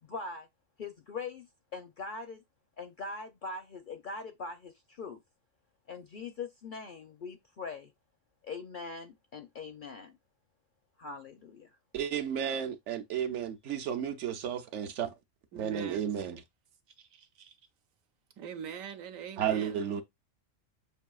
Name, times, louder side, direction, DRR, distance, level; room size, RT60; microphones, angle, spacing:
voice 1, 0.0-0.5 0.8-2.4 2.8-5.2 5.9-7.9 8.4-10.1 11.0-11.7, left 4 dB, 60° left, 0.5 m, -42 dB
voice 2, 11.9-15.1 15.6-16.4 19.4-20.0, right 8 dB, 65° right, 0.9 m, -33 dB
voice 3, 15.5-16.1 17.0-17.6 18.4-19.8, right 7 dB, 85° right, 1.1 m, -43 dB
6.7 x 2.7 x 2.3 m
omnidirectional pair, 1.4 m